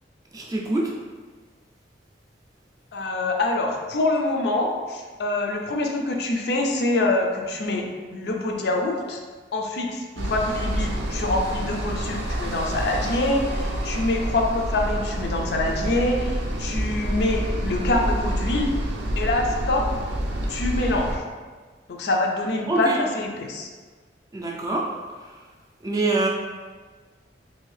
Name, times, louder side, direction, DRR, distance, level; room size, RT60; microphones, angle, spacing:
voice 1, 0.3-0.9 22.7-23.0 24.3-24.9 25.2-25.3 25.8-26.3, right 2 dB, 20° right, -2 dB, 0.4 m, -25 dB
voice 2, 2.9-9.2 9.5-18.7 19.2-19.9 20.5-21.2 21.9-23.7, left 2 dB, 65° left, 1 dB, 0.4 m, -25 dB
sound 1, 10.2-21.2, right 1 dB, 75° right, 0.5 m, -28 dB
2.7 x 2.7 x 3.2 m, 1.5 s
head